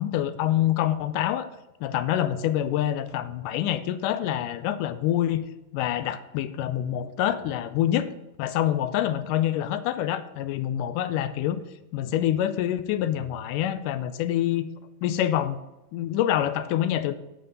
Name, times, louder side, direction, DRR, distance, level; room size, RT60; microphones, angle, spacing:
voice 1, 0.0-1.5 1.8-5.4 5.7-8.1 8.4-11.6 11.9-14.7 15.0-15.6 15.9-17.1, left 11 dB, 80° left, 12 dB, 2.0 m, -26 dB
7.7 x 7.6 x 6.6 m, 0.97 s
omnidirectional pair, 4.0 m